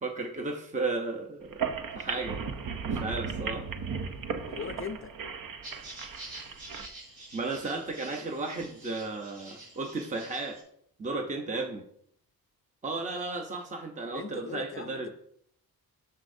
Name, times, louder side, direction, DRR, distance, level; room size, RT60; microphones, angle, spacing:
voice 1, 0.0-2.4 2.9-3.7 5.7-5.8 7.3-10.6 11.0-11.8 12.8-15.1, right 3 dB, 20° right, 0.8 m, -34 dB
sound 1, 1.4-6.9, right 6 dB, 65° right, 0.7 m, -36 dB
voice 2, 4.4-5.2 14.1-15.1, left 6 dB, 40° left, 0.4 m, -39 dB
sound 2, 5.6-10.6, right 2 dB, 80° right, 3.5 m, -47 dB
9.7 x 6.7 x 2.7 m
wide cardioid pair, 140°, 36 cm